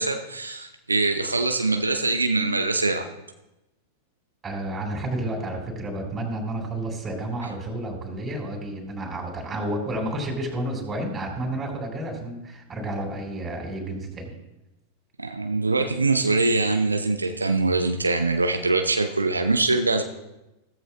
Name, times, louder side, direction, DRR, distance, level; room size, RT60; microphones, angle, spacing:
voice 1, 0.0-3.1 15.2-20.0, right 3 dB, 80° right, 6 dB, 0.7 m, -23 dB
voice 2, 4.4-14.3, right 1 dB, 20° right, 1 dB, 4.1 m, -31 dB
16.5 x 14.0 x 2.2 m, 0.97 s
figure-of-eight pair, 90°, 0 cm